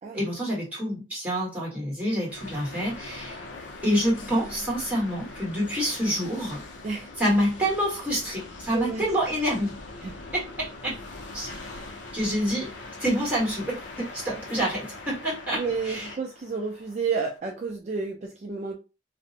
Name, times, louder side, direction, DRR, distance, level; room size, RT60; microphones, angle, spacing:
voice 1, 0.1-3.4 3.8-6.6 7.2-9.8 10.3-10.9 11.3-12.7 13.0-16.1, equal, 10° right, -5 dB, 1.4 m, -27 dB
sound 1, 2.3-17.4, left 2 dB, 70° left, 0.5 m, -42 dB
voice 2, 8.7-9.0 10.0-10.1 11.4-11.6 15.5-18.8, right 5 dB, 40° right, 0 dB, 0.3 m, -31 dB
2.5 x 2.0 x 2.6 m, 0.30 s
head